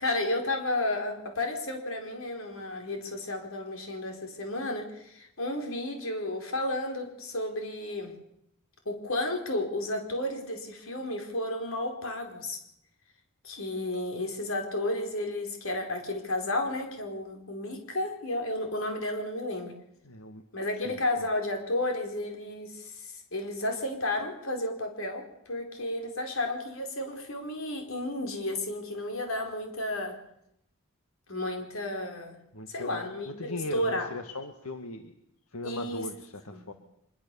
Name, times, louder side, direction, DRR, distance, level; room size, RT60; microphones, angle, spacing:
voice 1, 0.0-8.1 8.8-12.6 13.4-19.7 20.5-30.1 31.3-32.4 32.7-34.1 35.6-36.1 36.5-36.7, left 1 dB, 65° left, 4 dB, 4.7 m, -32 dB
voice 2, 20.0-20.4 20.8-21.0 32.5-35.2 35.5-36.7, left 1 dB, 85° left, 7 dB, 1.8 m, -39 dB
25.0 x 22.0 x 7.1 m, 0.78 s
head